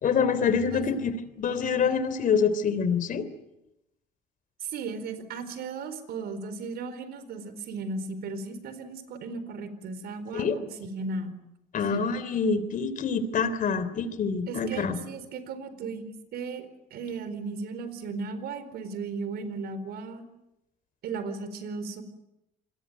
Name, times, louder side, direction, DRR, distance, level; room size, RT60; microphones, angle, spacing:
voice 1, 0.0-3.3 10.3-10.5 11.7-15.0, left 6 dB, 50° left, 13 dB, 3.3 m, -26 dB
voice 2, 4.6-11.3 11.9-12.0 14.5-20.3 21.0-22.0, right 4 dB, 70° right, 12 dB, 4.5 m, -36 dB
27.0 x 21.5 x 9.4 m, 0.88 s
cardioid pair, 110°, 17 cm